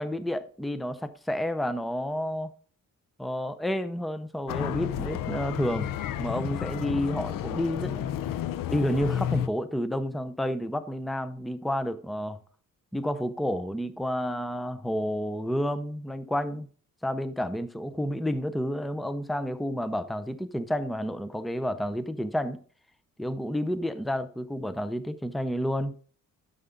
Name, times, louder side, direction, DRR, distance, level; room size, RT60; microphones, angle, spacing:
voice 1, 0.0-2.5 3.2-8.1 8.7-12.4 12.9-16.7 17.0-22.6 23.2-25.9, equal, ahead, 0.6 m, -30 dB
sound 1, 4.5-9.5, left 10 dB, 80° left, 0.7 m, -31 dB
11.0 x 6.9 x 3.8 m
cardioid pair, 120°, 33 cm